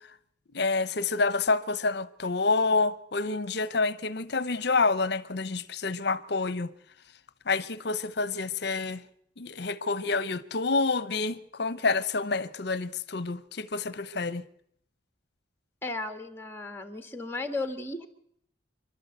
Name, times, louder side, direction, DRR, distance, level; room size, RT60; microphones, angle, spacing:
voice 1, 0.5-6.7 7.5-9.0 9.4-14.4, left 3 dB, 60° left, 0.8 m, -28 dB
voice 2, 15.8-18.1, left 2 dB, 10° left, 1.7 m, -35 dB
27.5 x 12.0 x 8.0 m
head